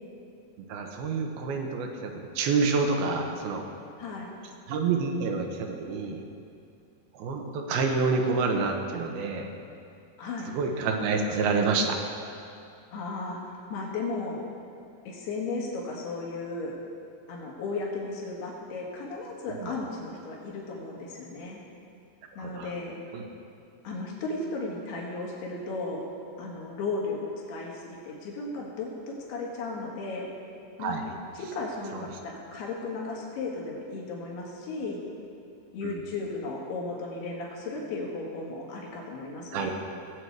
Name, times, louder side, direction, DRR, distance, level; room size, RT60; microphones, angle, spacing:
voice 1, 0.7-3.6 4.7-6.2 7.1-9.5 10.5-12.0 19.5-19.7 22.4-22.7 23.1-23.2 30.8-31.0 31.9-32.1 35.8-36.0 39.5-39.7, right 4 dB, 75° right, 2 dB, 3.0 m, -28 dB
voice 2, 4.0-4.3 10.2-10.5 12.9-14.4 15.1-16.7 17.3-21.6 22.4-23.0 23.8-26.0 26.4-27.2 27.5-30.3 30.8-31.0 31.4-35.0 35.7-39.7, left 3 dB, 85° left, -3 dB, 3.8 m, -35 dB
18.5 x 8.1 x 4.7 m, 2.5 s
omnidirectional pair, 4.5 m